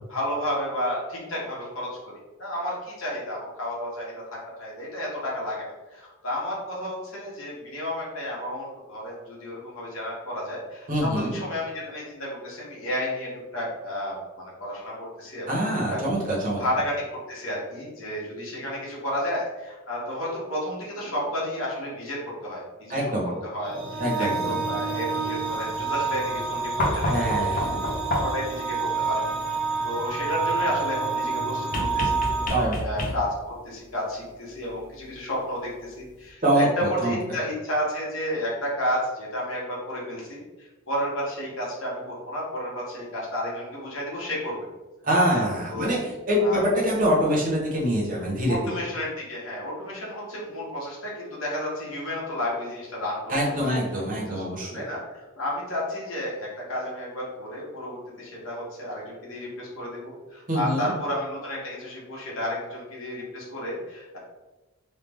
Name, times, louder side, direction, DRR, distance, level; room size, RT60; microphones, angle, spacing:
voice 1, 0.1-1.9 2.4-5.6 5.9-15.5 15.9-16.0 16.6-27.7 28.2-29.2 29.5-29.6 29.8-32.3 32.6-44.6 45.3-45.9 46.4-46.6 48.5-53.7 54.2-54.4 54.7-64.2, left 1 dB, 75° left, -5 dB, 1.3 m, -32 dB
voice 2, 10.9-11.4 15.5-16.6 22.9-23.3 24.0-24.6 27.1-27.9 32.5-32.8 36.4-36.7 37.0-37.4 45.0-48.6 53.3-54.8 60.5-60.9, equal, 40° right, -4 dB, 1.0 m, -25 dB
sound 1, 23.4-32.5, right 4 dB, 70° right, 0.9 m, -28 dB
sound 2, 26.8-28.5 31.7-33.5 35.0-35.1, left 1 dB, 40° left, 0.5 m, -28 dB
3.2 x 2.3 x 3.4 m, 1.1 s
head